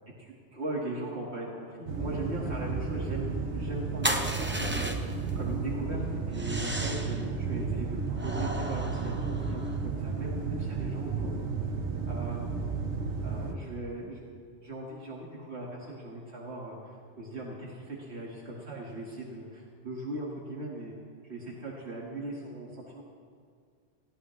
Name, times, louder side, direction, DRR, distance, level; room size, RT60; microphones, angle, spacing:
voice 1, 0.2-11.4 12.1-12.5 13.2-14.3 14.6-21.0 21.2-23.0, right 1 dB, 75° right, -4 dB, 2.2 m, -39 dB
sound 1, 1.9-13.5, right 4 dB, 90° right, 1.3 m, -33 dB
sound 2, 4.0-5.3 6.3-7.2 8.2-9.8, right 1 dB, 10° right, 0.8 m, -34 dB
22.5 x 17.0 x 3.2 m, 2.1 s
omnidirectional pair, 1.1 m